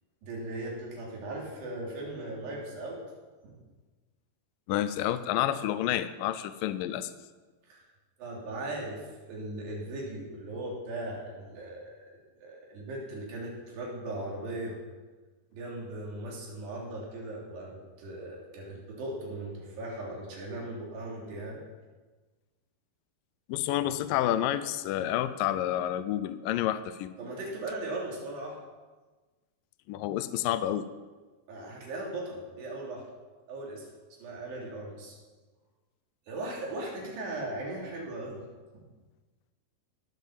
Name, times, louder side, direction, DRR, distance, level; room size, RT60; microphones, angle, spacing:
voice 1, 0.2-3.0 3.4-3.6 7.7-7.9 8.2-14.8 15.5-21.6 27.2-28.6 31.5-33.0 33.5-33.9 34.2-35.2 36.3-38.4 38.7-38.8, right 2 dB, 75° right, -2 dB, 5.2 m, -38 dB
voice 2, 4.7-7.1 23.5-27.1 29.9-30.8, left 12 dB, 85° left, 12 dB, 1.9 m, -29 dB
17.5 x 7.5 x 7.5 m, 1.3 s
omnidirectional pair, 4.8 m